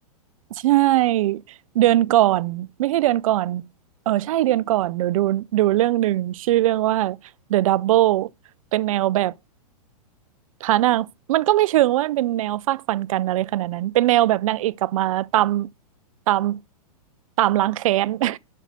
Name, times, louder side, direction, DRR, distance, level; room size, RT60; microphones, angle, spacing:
voice 1, 0.5-1.4 1.7-3.7 4.1-7.2 7.5-8.3 8.7-9.3 10.6-15.7 16.3-16.6 17.4-18.4, right 15 dB, 60° right, 0.4 m, -20 dB
6.3 x 5.3 x 6.7 m
hypercardioid pair, 125°, 19 cm